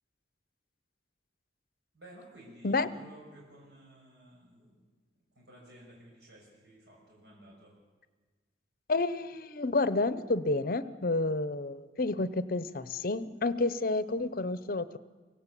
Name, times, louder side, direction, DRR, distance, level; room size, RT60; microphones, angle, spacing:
voice 1, 1.9-4.8 5.3-7.7, right 1 dB, 70° right, -3 dB, 6.4 m, -54 dB
voice 2, 8.9-15.0, left 3 dB, 55° left, 15 dB, 0.8 m, -30 dB
23.5 x 17.5 x 8.4 m, 1.4 s
head